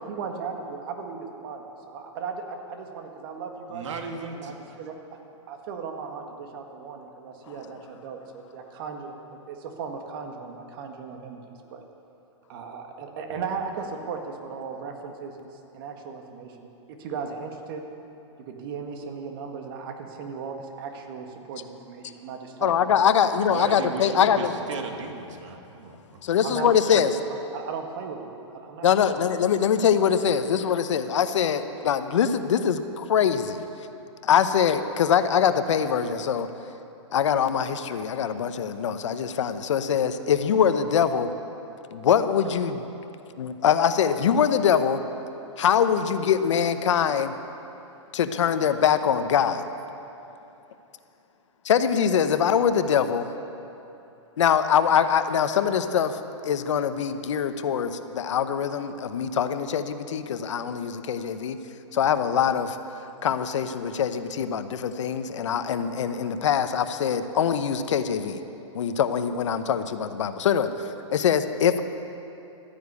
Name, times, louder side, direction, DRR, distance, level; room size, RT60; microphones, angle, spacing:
voice 1, 0.1-4.0 4.3-5.2 5.5-9.1 9.5-11.8 12.5-15.5 15.7-16.7 17.0-17.8 18.5-22.9 23.8-23.9 25.5-25.6 26.4-26.7 27.5-29.1, right 5 dB, 45° right, 4 dB, 1.8 m, -37 dB
voice 2, 3.7-4.6 13.3-13.5 23.4-26.2, right 4 dB, 70° right, 4 dB, 1.8 m, -36 dB
voice 3, 22.6-24.5 26.2-27.1 28.8-33.7 34.2-36.5 37.1-41.3 41.9-42.8 43.4-45.0 45.6-47.4 48.1-49.6 51.6-53.3 54.4-56.2 56.4-61.6 61.9-62.8 63.2-68.4 68.7-70.7 71.1-71.8, left 8 dB, 75° left, 10 dB, 0.9 m, -23 dB
13.5 x 10.0 x 8.3 m, 2.9 s
hypercardioid pair, 145°, 16 cm